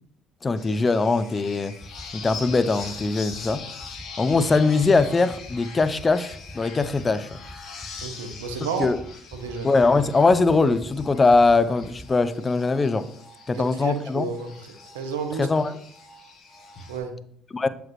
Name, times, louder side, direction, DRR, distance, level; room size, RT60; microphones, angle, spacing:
voice 1, 0.4-1.7 2.1-3.6 4.2-7.3 8.8-9.0 9.6-13.1 13.5-14.3 15.4-15.8 17.5-17.7, left 3 dB, 30° left, 0.5 m, -21 dB
sound 1, 0.6-17.0, left 5 dB, 60° left, 1.2 m, -42 dB
sound 2, 1.8-2.0 2.3-2.5 2.8-3.0 3.3-3.5 3.8-4.0 4.3-4.5 4.8-5.0 5.3-5.5 5.8-6.0 6.3-6.5 6.8-7.0 7.3-7.5 7.8-8.0 8.3-8.5 8.8-9.0 9.3-9.5 9.8-10.0 10.3-10.5 10.8-11.0 11.3-11.5 11.8-12.0, left 1 dB, 5° left, 1.2 m, -42 dB
voice 2, 8.0-8.9 9.3-9.7 13.5-14.5 14.9-15.5 16.9-17.2, right 5 dB, 90° right, 0.8 m, -31 dB
7.6 x 5.1 x 3.0 m
hypercardioid pair, 60°, 0 cm